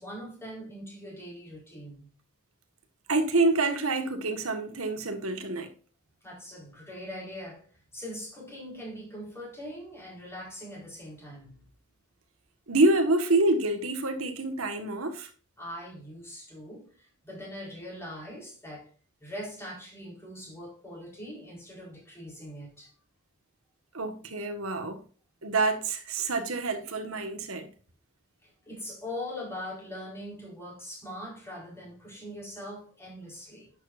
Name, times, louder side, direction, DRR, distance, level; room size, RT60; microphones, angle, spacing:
voice 1, 0.0-2.1 6.2-11.7 15.6-18.9 19.2-22.9 28.4-33.7, left 1 dB, 10° left, 4.6 m, -42 dB
voice 2, 3.1-5.7 12.7-15.3 23.9-25.0 25.4-27.7, right 2 dB, 80° right, 1.6 m, -27 dB
11.0 x 8.0 x 2.6 m
head